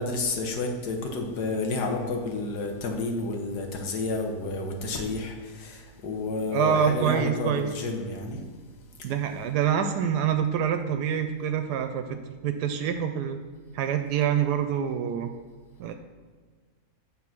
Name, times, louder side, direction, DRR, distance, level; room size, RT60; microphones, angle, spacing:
voice 1, 0.0-8.4 9.0-9.1, left 2 dB, 85° left, 2 dB, 1.7 m, -30 dB
voice 2, 6.5-7.7 9.0-13.4 13.7-15.3 15.8-15.9, right 8 dB, 85° right, 7 dB, 1.1 m, -26 dB
8.9 x 3.8 x 5.9 m, 1.5 s
omnidirectional pair, 1.7 m